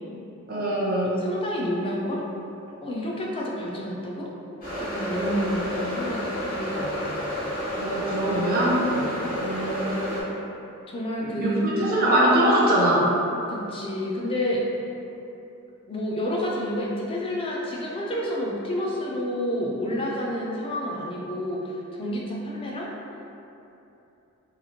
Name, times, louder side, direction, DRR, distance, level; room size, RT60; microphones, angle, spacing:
voice 1, 0.5-1.2 7.8-8.8 9.4-10.1 11.2-13.1, right 1 dB, 45° right, -6 dB, 0.5 m, -22 dB
voice 2, 1.0-2.2 2.8-4.3 4.8-7.0 8.9-9.1 10.9-11.6 13.5-14.7 15.9-22.9, equal, 25° left, -3 dB, 0.4 m, -29 dB
sound 1, 4.6-10.2, equal, 40° left, 1.4 m, -30 dB
2.9 x 2.4 x 2.8 m, 2.9 s
head